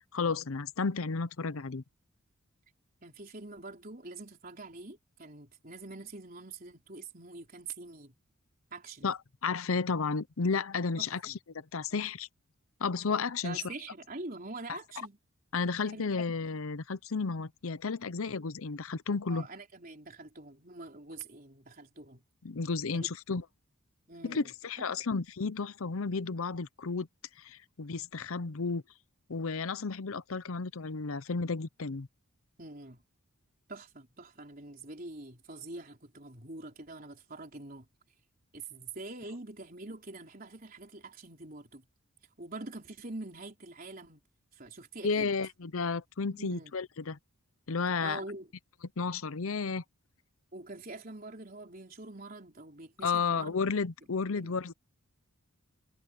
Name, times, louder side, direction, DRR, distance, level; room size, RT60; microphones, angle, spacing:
voice 1, 0.0-1.8 9.0-12.3 12.8-13.6 14.7-14.8 15.5-19.5 22.4-23.4 24.2-27.1 27.4-28.8 29.3-32.1 45.0-47.2 47.7-48.2 49.0-49.8 53.0-54.7, left 4 dB, 70° left, 0.7 m, -32 dB
voice 2, 3.0-8.1 8.7-9.1 11.0-11.4 13.4-15.2 15.8-16.2 19.3-22.2 22.9-23.1 24.1-24.5 24.8-24.9 32.6-33.0 33.7-37.9 38.5-41.9 42.4-44.2 44.5-45.3 46.3-46.7 48.0-48.5 50.5-53.6 54.3-54.6, right 2 dB, 40° right, 4.2 m, -45 dB
head